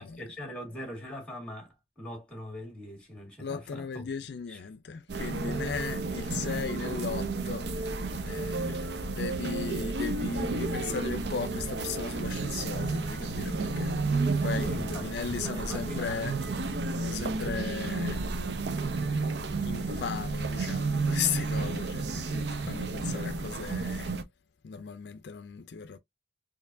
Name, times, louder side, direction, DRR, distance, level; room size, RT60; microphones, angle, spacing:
voice 1, 0.0-4.1 4.5-4.6 5.7-5.8 14.5-16.4 21.5-21.8 22.6-22.7, equal, 5° left, 1.8 m, -42 dB
voice 2, 3.4-7.7 8.2-16.3 17.0-18.2 19.0-19.4 19.6-24.1 24.6-26.0, left 6 dB, 65° left, 0.4 m, -37 dB
sound 1, 5.1-24.2, right 3 dB, 70° right, 0.6 m, -31 dB
4.4 x 2.6 x 2.6 m
head